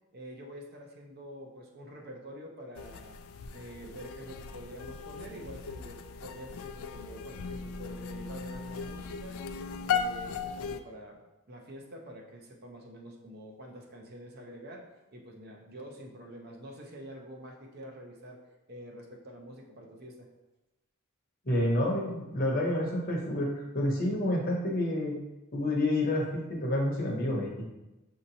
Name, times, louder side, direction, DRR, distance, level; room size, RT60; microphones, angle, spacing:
voice 1, 0.1-3.2 3.5-9.4 9.8-11.2 11.5-14.9 15.1-18.4 18.7-20.3, equal, 45° right, 1 dB, 0.6 m, -46 dB
sound 1, 2.8-10.8, left 6 dB, 70° left, 0.3 m, -37 dB
voice 2, 21.5-25.2 25.5-27.6, left 1 dB, 40° left, -1 dB, 0.8 m, -29 dB
6.3 x 2.8 x 2.7 m, 1.0 s
head